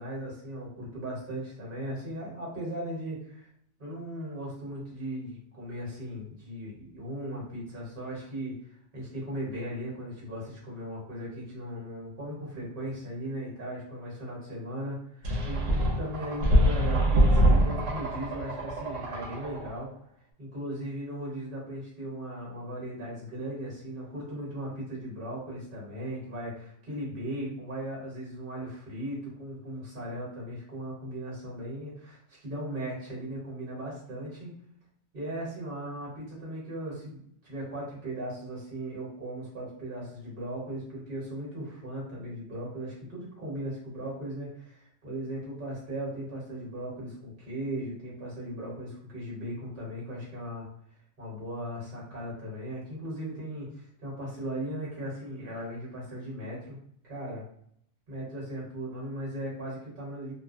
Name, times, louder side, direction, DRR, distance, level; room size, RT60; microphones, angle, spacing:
voice 1, 0.0-3.5 3.8-19.9 20.4-34.5 35.1-50.7 51.2-56.8 57.0-57.4 58.1-60.3, right 1 dB, 50° right, -4 dB, 1.3 m, -37 dB
sound 1, 15.2-19.8, right 1 dB, 80° right, 1.0 m, -24 dB
2.4 x 2.1 x 2.5 m, 0.68 s
omnidirectional pair, 1.2 m